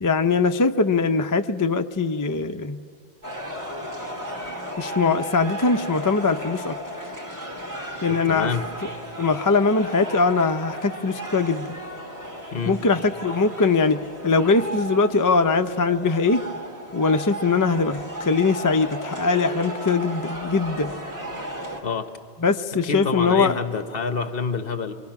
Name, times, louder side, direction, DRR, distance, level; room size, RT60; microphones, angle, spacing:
voice 1, 0.0-2.8 4.8-6.7 8.0-8.5 8.8-8.9 9.2-11.8 12.7-16.4 16.9-20.9 22.4-23.6, left 4 dB, 30° left, 8 dB, 0.4 m, -21 dB
sound 1, 3.2-21.8, equal, 15° right, 2.5 m, -35 dB
voice 2, 8.3-8.6 12.5-12.7 21.8-22.1 22.9-24.9, left 5 dB, 60° left, 8 dB, 1.2 m, -27 dB
27.5 x 24.0 x 5.9 m, 2.3 s
omnidirectional pair, 1.1 m